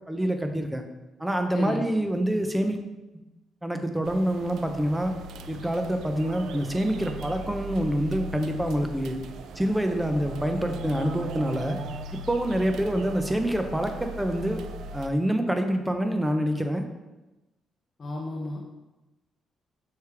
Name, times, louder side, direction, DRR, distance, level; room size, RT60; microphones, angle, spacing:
voice 1, 0.1-0.8 1.2-2.8 3.6-5.1 5.5-9.2 9.6-11.8 12.3-14.6 14.9-16.8, right 1 dB, 10° right, 5 dB, 0.8 m, -26 dB
voice 2, 1.5-1.8 18.0-18.7, left 2 dB, 40° left, -1 dB, 0.8 m, -32 dB
sound 1, 4.0-15.1, right 2 dB, 75° right, 0.4 m, -39 dB
6.4 x 4.8 x 3.5 m, 1.0 s
cardioid pair, 90°, 0 cm